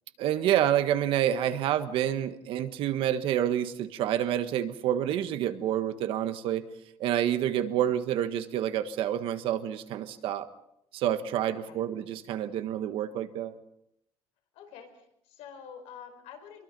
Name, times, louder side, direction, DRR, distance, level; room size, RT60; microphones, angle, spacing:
voice 1, 0.2-6.6 7.0-10.5 10.9-13.6, right 11 dB, 60° right, 10 dB, 1.5 m, -28 dB
voice 2, 7.5-8.0 11.5-11.8 14.5-16.6, left 7 dB, 75° left, 6 dB, 4.8 m, -48 dB
26.0 x 22.5 x 5.4 m, 0.77 s
cardioid pair, 180°, 11 cm